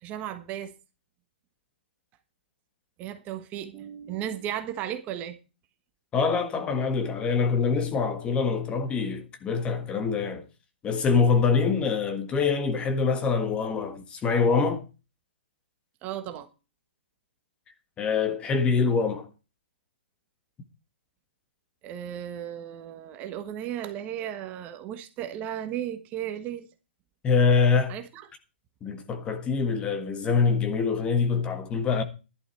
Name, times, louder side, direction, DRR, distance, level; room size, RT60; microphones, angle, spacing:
voice 1, 0.0-0.7 3.0-5.4 16.0-16.5 21.8-26.7 27.9-28.2, right 10 dB, 25° right, 1.3 m, -35 dB
voice 2, 6.1-10.4 10.8-14.8 18.0-19.3 27.2-27.9 28.8-32.0, left 5 dB, 15° left, 1.6 m, -24 dB
11.5 x 11.0 x 4.5 m
hypercardioid pair, 135°, 6 cm